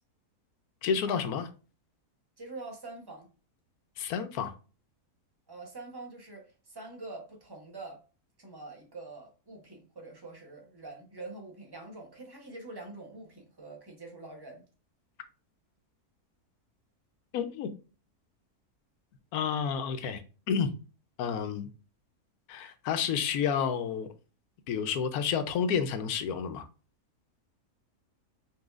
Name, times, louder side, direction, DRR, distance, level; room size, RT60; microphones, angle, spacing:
voice 1, 0.8-1.5 4.0-4.5 17.3-17.7 19.3-20.2 20.5-20.7 21.2-21.7 22.5-24.1 24.7-26.7, left 7 dB, 75° left, 1.1 m, -30 dB
voice 2, 2.4-3.3 5.5-8.0 8.4-14.6, right 2 dB, 20° right, 0.9 m, -45 dB
5.5 x 3.1 x 2.4 m
omnidirectional pair, 1.7 m